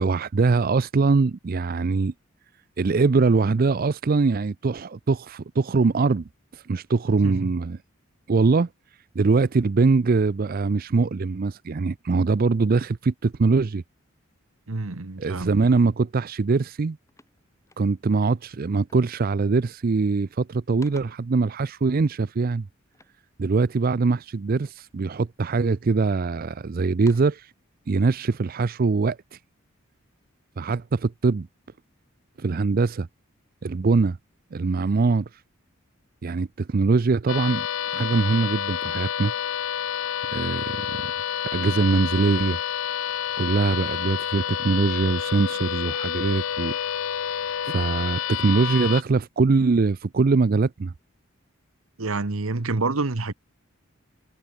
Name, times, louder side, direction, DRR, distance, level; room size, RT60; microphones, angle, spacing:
voice 1, 0.0-2.1 2.8-7.8 8.3-8.7 9.2-13.8 15.2-17.0 17.8-22.6 23.4-27.5 27.9-29.4 30.6-31.5 32.4-33.1 33.6-34.2 34.5-35.3 36.2-37.7 37.9-39.3 40.3-41.1 41.5-42.6 43.4-46.8 47.7-50.9, right 4 dB, 45° right, 0.4 m, -22 dB
voice 2, 14.7-15.5 52.0-53.3, right 3 dB, 80° right, 1.2 m, -27 dB
sound 1, 16.2-16.4 16.7-18.2 18.9-19.2 19.5-20.0 20.4-21.4 22.9-24.1 24.6-25.3 25.8-26.4 26.8-27.5, left 2 dB, 15° left, 3.9 m, -55 dB
sound 2, 37.3-49.0, left 9 dB, 70° left, 0.5 m, -29 dB
head